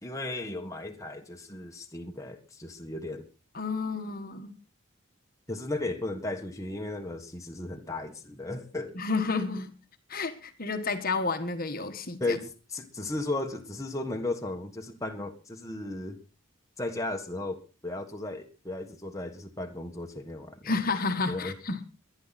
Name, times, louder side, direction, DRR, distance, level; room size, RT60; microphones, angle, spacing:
voice 1, 0.0-3.2 5.5-9.0 12.2-16.2 16.8-20.7 21.3-21.6, left 2 dB, 15° left, 3 dB, 1.5 m, -35 dB
voice 2, 3.5-4.5 8.9-9.7 10.1-12.4 20.6-21.8, left 4 dB, 40° left, 7 dB, 1.4 m, -31 dB
22.0 x 10.5 x 4.2 m, 0.34 s
head